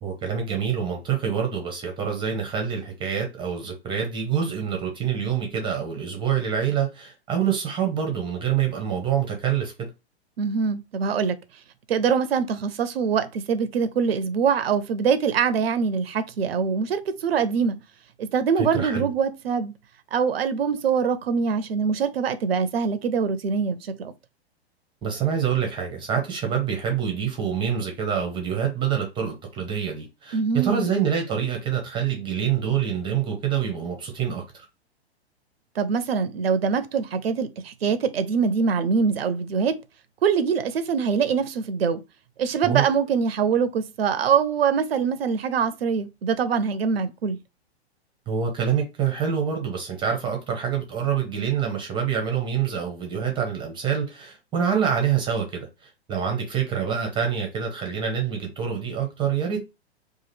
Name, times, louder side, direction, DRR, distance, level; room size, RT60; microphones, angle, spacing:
voice 1, 0.0-9.9 18.6-19.1 25.0-34.7 42.6-42.8 48.3-59.6, right 8 dB, 15° right, 0.7 m, -26 dB
voice 2, 10.4-11.4 11.9-17.8 18.2-19.7 20.1-24.1 30.3-30.9 35.8-39.8 40.2-42.0 42.4-47.4, right 6 dB, 65° right, 0.5 m, -24 dB
2.9 x 2.5 x 4.1 m
figure-of-eight pair, 110°, 33 cm